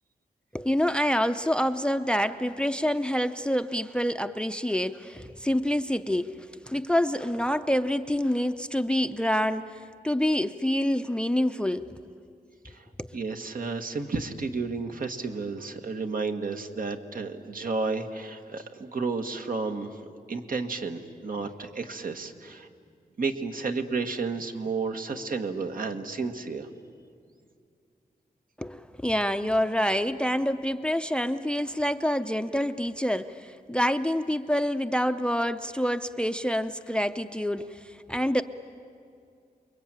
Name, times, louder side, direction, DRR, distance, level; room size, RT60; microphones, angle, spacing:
voice 1, 0.5-11.9 13.0-13.2 28.6-38.4, equal, 5° left, 10 dB, 0.6 m, -27 dB
voice 2, 13.1-22.7 23.2-26.7, right 4 dB, 60° right, 5 dB, 1.6 m, -32 dB
29.0 x 22.5 x 9.0 m, 2.4 s
wide cardioid pair, 130°, 16 cm